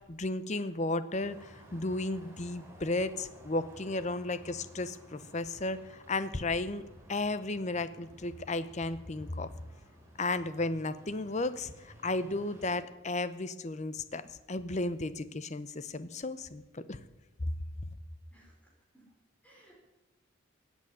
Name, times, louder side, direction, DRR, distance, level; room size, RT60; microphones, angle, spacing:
voice 1, 0.1-6.8 7.1-9.5 10.2-17.0, left 2 dB, 35° left, 14 dB, 0.8 m, -34 dB
sound 1, 1.2-12.8, right 1 dB, 15° right, 3.2 m, -55 dB
voice 2, 18.3-19.0 19.4-19.8, right 1 dB, 5° left, -2 dB, 4.5 m, -61 dB
16.0 x 8.3 x 9.8 m, 1.0 s
head